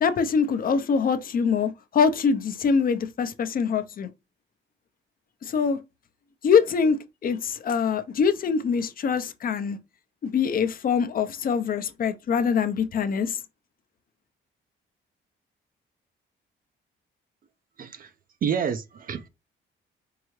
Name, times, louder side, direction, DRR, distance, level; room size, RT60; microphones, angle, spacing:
voice 1, 0.0-4.1 5.4-5.8 6.4-9.8 10.2-13.4, left 6 dB, 45° left, 0.6 m, -24 dB
voice 2, 17.8-18.1 18.4-19.3, right 7 dB, 45° right, 0.4 m, -28 dB
4.6 x 2.7 x 3.1 m
cardioid pair, 90°, 20 cm